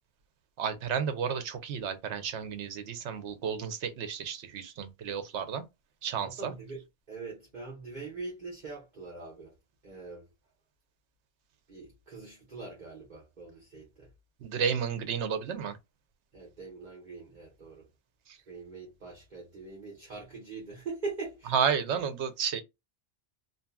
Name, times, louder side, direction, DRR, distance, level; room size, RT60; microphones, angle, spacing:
voice 1, 0.6-5.6 6.0-6.5 14.4-15.8 18.3-18.4 21.5-22.6, right 7 dB, 80° right, 0.9 m, -32 dB
voice 2, 6.2-6.8 7.1-9.5 9.8-10.3 11.7-14.1 16.3-17.9 18.5-21.5, right 3 dB, 45° right, 1.0 m, -42 dB
2.7 x 2.6 x 2.2 m
omnidirectional pair, 1.2 m